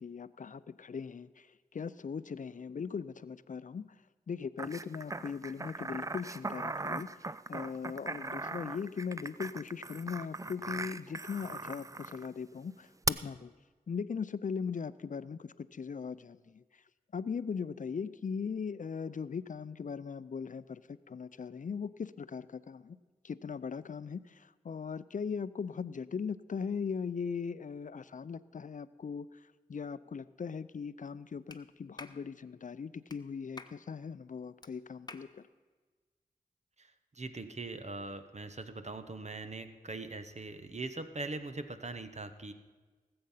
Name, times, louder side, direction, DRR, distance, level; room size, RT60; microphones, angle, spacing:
voice 1, 0.0-1.5 1.7-3.9 4.3-7.1 7.5-13.5 13.9-16.6 17.1-23.0 23.2-29.3 29.7-35.4, left 6 dB, 55° left, 16 dB, 0.5 m, -39 dB
sound 1, 4.6-12.3 13.1-13.2, right 3 dB, 20° right, 0.4 m, -38 dB
Clapping, 31.5-31.6 32.0-32.2 33.1-33.2 33.6-33.8 34.6-34.7 35.1-35.3, left 2 dB, 25° left, 0.9 m, -48 dB
voice 2, 36.8-42.5, right 3 dB, 45° right, 9 dB, 1.0 m, -41 dB
18.5 x 7.8 x 5.6 m, 1.3 s
cardioid pair, 40°, 15 cm